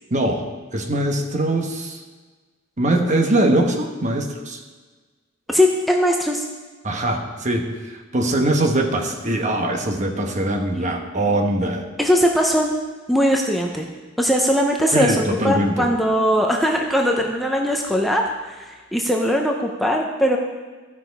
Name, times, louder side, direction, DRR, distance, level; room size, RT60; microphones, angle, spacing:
voice 1, 0.1-0.4 0.7-2.0 2.8-4.6 6.8-11.9 14.9-15.9, right 1 dB, 40° right, 3 dB, 1.2 m, -22 dB
voice 2, 5.5-6.4 10.7-11.0 12.0-12.7 13.1-13.9 14.2-20.4, equal, ahead, 0 dB, 0.7 m, -20 dB
14.0 x 6.1 x 4.7 m, 1.3 s
head